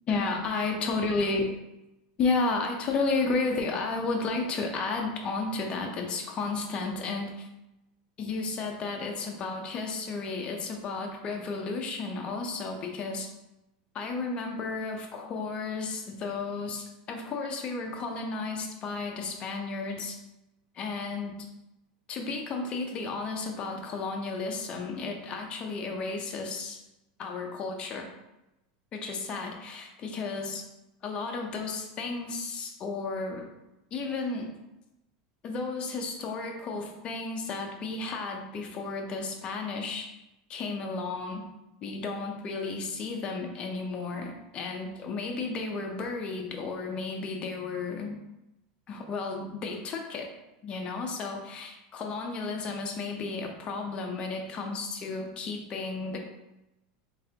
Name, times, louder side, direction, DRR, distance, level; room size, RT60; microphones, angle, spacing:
voice 1, 0.1-1.5 2.2-7.5 8.2-13.3 13.9-20.2 20.7-21.4 22.1-26.8 27.2-28.1 28.9-30.6 31.0-33.5 33.9-34.5 35.4-40.1 40.5-41.4 41.8-48.2 48.9-50.3 50.6-56.2, left 3 dB, 25° left, 2 dB, 0.6 m, -33 dB
3.8 x 3.6 x 2.8 m, 0.94 s
supercardioid pair, 160°, 4 cm